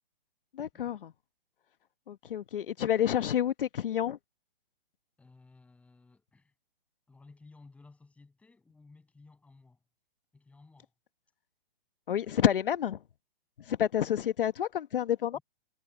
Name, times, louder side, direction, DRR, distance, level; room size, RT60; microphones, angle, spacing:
voice 1, 0.5-1.1 2.1-4.2 12.1-13.0 13.6-15.4, left 10 dB, 60° left, 1.1 m, -29 dB
voice 2, 5.2-6.5 7.1-9.8 10.3-10.9 12.1-12.5 15.3-15.4, left 3 dB, 5° left, 7.7 m, -57 dB
hypercardioid pair, 165°, 30 cm